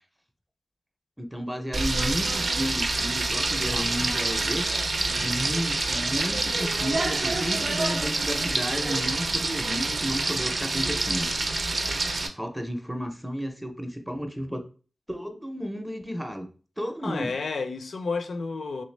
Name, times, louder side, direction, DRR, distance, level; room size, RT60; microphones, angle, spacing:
voice 1, 1.2-4.6 5.2-11.3 12.2-14.6 15.1-16.5 16.8-17.3, equal, 5° right, 0.5 m, -32 dB
Frying (food), 1.7-12.3, right 3 dB, 55° right, 0.5 m, -27 dB
voice 2, 5.1-5.5 17.0-18.8, left 4 dB, 70° left, 0.4 m, -31 dB
3.2 x 3.1 x 3.2 m
wide cardioid pair, 120°, 0 cm